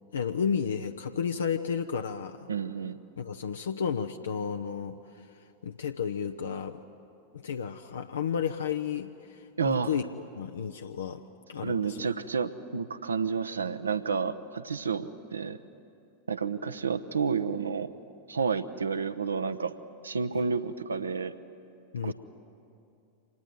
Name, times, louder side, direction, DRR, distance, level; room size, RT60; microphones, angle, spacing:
voice 1, 0.1-2.5 3.2-5.2 5.6-6.8 7.3-10.0 10.3-11.2 11.5-12.0 21.9-22.1, left 7 dB, 70° left, 7 dB, 0.7 m, -32 dB
voice 2, 2.5-3.0 9.6-9.9 11.6-15.6 16.3-17.9 18.3-19.7 20.0-21.4 22.0-22.1, right 5 dB, 75° right, 11 dB, 0.9 m, -30 dB
26.0 x 19.0 x 9.2 m, 2.6 s
figure-of-eight pair, 90°, 0 cm